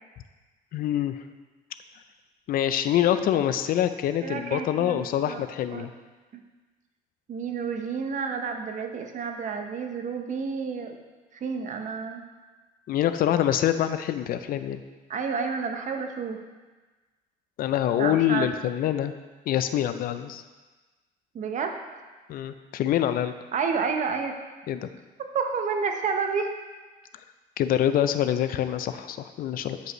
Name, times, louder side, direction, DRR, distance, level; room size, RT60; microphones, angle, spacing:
voice 1, 0.7-1.2 2.5-5.9 12.9-14.8 17.6-19.1 19.5-20.4 22.3-23.3 24.7-24.9 27.6-29.8, left 11 dB, 60° left, 11 dB, 0.4 m, -25 dB
voice 2, 4.2-5.4 5.7-5.9 7.3-10.9 11.3-12.2 15.1-16.4 18.0-18.5 21.3-21.8 23.5-24.4 25.3-26.5, right 5 dB, 45° right, 5 dB, 0.8 m, -30 dB
9.6 x 5.2 x 3.0 m, 1.3 s
cardioid pair, 110°, 17 cm